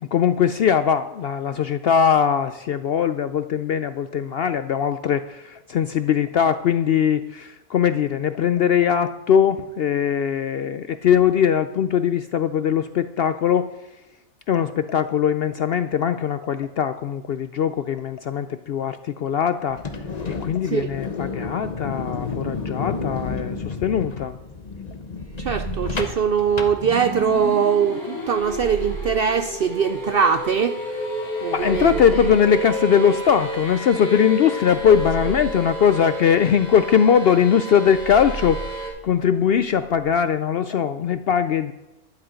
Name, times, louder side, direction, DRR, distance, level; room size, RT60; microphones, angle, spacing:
voice 1, 0.0-13.7 14.5-19.8 20.4-24.4 31.5-41.7, left 8 dB, 65° left, 0.6 m, -20 dB
sound 1, 19.7-27.5, left 4 dB, 35° left, 1.0 m, -31 dB
sound 2, 25.2-27.3 28.4-30.5 31.5-33.9 34.7-36.9 37.9-40.0, right 5 dB, 25° right, 3.5 m, -37 dB
voice 2, 25.4-30.8 31.4-32.0, right 7 dB, 70° right, 0.5 m, -21 dB
sound 3, 26.8-38.9, equal, 5° left, 5.3 m, -31 dB
12.0 x 10.5 x 5.1 m
omnidirectional pair, 1.4 m